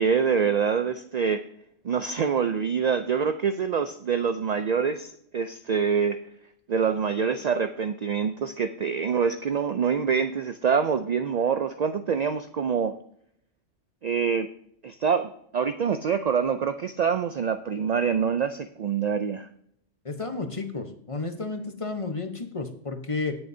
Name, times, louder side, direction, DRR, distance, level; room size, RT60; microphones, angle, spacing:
voice 1, 0.0-1.4 1.8-6.2 6.7-13.0 14.0-14.5 14.8-19.5, right 6 dB, 75° right, 10 dB, 0.3 m, -25 dB
voice 2, 20.0-23.4, left 3 dB, 30° left, 6 dB, 0.9 m, -32 dB
16.5 x 6.9 x 2.7 m, 0.68 s
omnidirectional pair, 1.2 m